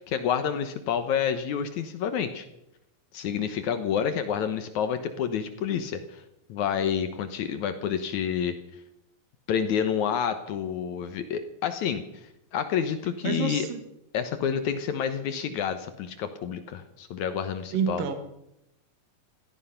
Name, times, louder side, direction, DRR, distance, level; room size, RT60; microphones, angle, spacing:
voice 1, 0.0-2.5 3.1-6.2 6.5-8.6 9.5-13.7 14.1-18.1, left 8 dB, 70° left, 10 dB, 1.9 m, -29 dB
voice 2, 13.2-13.8 17.7-18.1, right 7 dB, 70° right, 8 dB, 3.0 m, -28 dB
16.5 x 14.0 x 5.8 m, 0.84 s
omnidirectional pair, 4.4 m